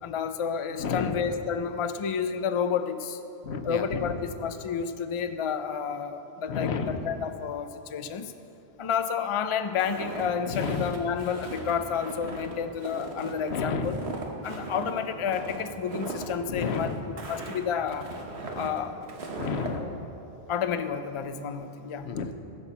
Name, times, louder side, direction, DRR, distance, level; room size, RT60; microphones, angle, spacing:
voice 1, 0.0-3.2 3.6-8.3 8.8-14.0 14.4-16.9 17.3-18.1 18.5-19.0 20.5-22.1, left 7 dB, 40° left, 9 dB, 0.4 m, -30 dB
voice 2, 0.8-1.1 3.4-4.2 6.5-7.0 10.5-11.0 13.5-14.0 16.5-17.0 19.4-20.1 22.0-22.3, left 5 dB, 85° left, 7 dB, 1.0 m, -31 dB
Walk footsteps, 9.8-19.8, right 3 dB, 85° right, 1.4 m, -38 dB
15.0 x 5.6 x 7.1 m, 2.9 s
omnidirectional pair, 1.1 m